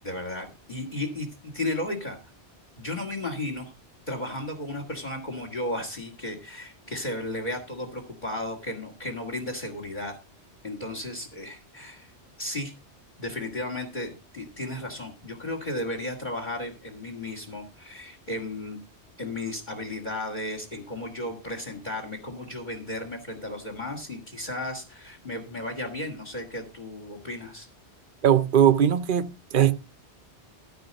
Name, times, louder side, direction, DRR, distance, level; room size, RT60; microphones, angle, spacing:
voice 1, 0.0-2.2 2.8-3.7 4.1-10.1 10.6-12.1 12.4-12.7 13.2-18.8 19.2-27.7, left 1 dB, 40° left, 2.3 m, -34 dB
voice 2, 28.2-29.7, right 9 dB, 50° right, 1.0 m, -20 dB
14.5 x 4.9 x 6.5 m
omnidirectional pair, 1.2 m